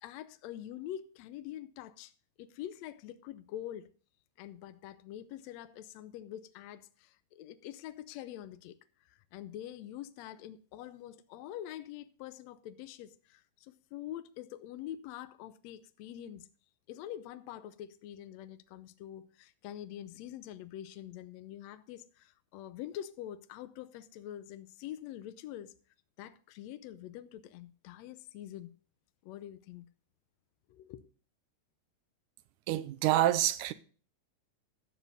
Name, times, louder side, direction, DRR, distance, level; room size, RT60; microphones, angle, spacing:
voice 1, 0.0-2.1 2.4-3.9 4.4-8.8 9.1-16.5 16.9-25.7 26.2-28.7 29.2-29.9 30.7-31.1, left 11 dB, 80° left, 1.6 m, -45 dB
voice 2, 32.7-33.7, right 13 dB, 80° right, 2.1 m, -27 dB
12.5 x 7.1 x 4.1 m
omnidirectional pair, 3.7 m